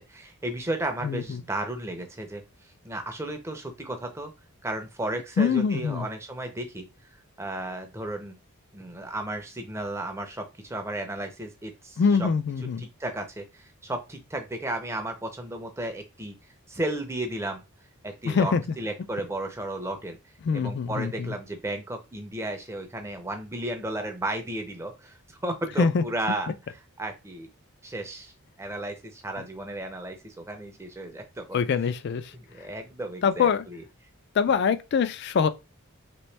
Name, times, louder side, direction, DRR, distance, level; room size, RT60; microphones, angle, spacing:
voice 1, 0.1-2.4 2.8-4.3 4.6-6.8 7.4-8.3 8.7-12.3 12.6-16.4 16.7-17.6 18.0-20.2 20.5-25.1 25.4-26.5 27.0-27.5 27.8-28.3 28.6-31.6 32.3-33.8, right 1 dB, 10° right, 0.5 m, -34 dB
voice 2, 1.0-1.4 5.4-6.1 12.0-12.8 18.2-18.6 20.4-21.3 25.8-26.0 31.5-32.2 33.2-33.6 34.4-35.5, left 5 dB, 50° left, 0.3 m, -24 dB
3.0 x 2.9 x 3.2 m
head